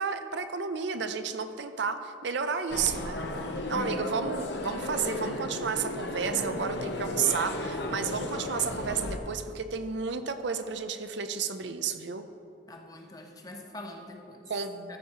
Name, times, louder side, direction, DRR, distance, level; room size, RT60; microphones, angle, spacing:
voice 1, 0.0-3.2 3.7-12.3 14.5-15.0, right 6 dB, 65° right, 9 dB, 0.5 m, -32 dB
sound 1, 2.7-9.2, left 1 dB, 60° left, 0.8 m, -34 dB
voice 2, 3.7-4.3 6.2-6.5 8.6-9.2 12.7-14.5 14.9-15.0, left 1 dB, 20° left, 3 dB, 0.8 m, -44 dB
14.0 x 4.7 x 5.5 m, 2.5 s
head